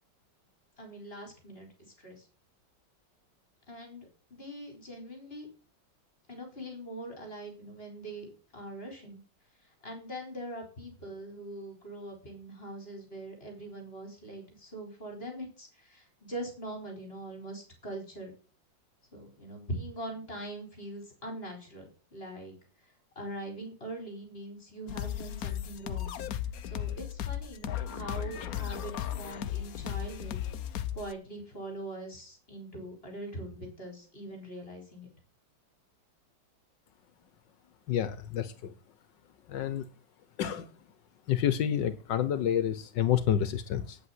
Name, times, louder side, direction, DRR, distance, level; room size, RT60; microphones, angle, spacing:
voice 1, 0.8-1.7 2.0-2.3 3.7-5.5 6.3-9.2 9.8-18.3 19.1-22.5 23.1-26.2 26.6-30.4 30.9-35.1, right 1 dB, 30° left, 3 dB, 4.9 m, -42 dB
sound 1, 24.9-31.1, left 11 dB, 60° left, 1.2 m, -35 dB
voice 2, 37.9-38.7 39.5-39.8 40.4-40.7 41.3-44.0, left 10 dB, 80° left, 13 dB, 1.6 m, -29 dB
9.4 x 8.5 x 8.1 m, 0.36 s
omnidirectional pair, 1.9 m